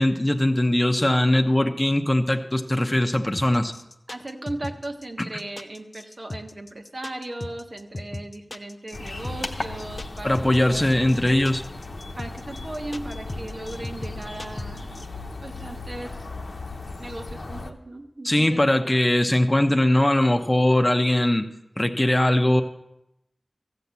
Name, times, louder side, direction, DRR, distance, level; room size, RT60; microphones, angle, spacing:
voice 1, 0.0-3.7 5.2-5.3 10.2-11.6 18.2-21.5 21.8-22.6, left 1 dB, 25° left, 6 dB, 0.8 m, -20 dB
sound 1, 3.3-15.0, left 1 dB, 50° left, 0.7 m, -37 dB
voice 2, 4.1-11.3 12.2-15.0 15.4-16.1 17.0-18.6, right 1 dB, 55° right, 3 dB, 1.3 m, -37 dB
sound 2, 8.9-17.7, left 2 dB, 80° left, 0.9 m, -36 dB
14.0 x 5.8 x 8.2 m, 0.86 s
wide cardioid pair, 50°, 0 cm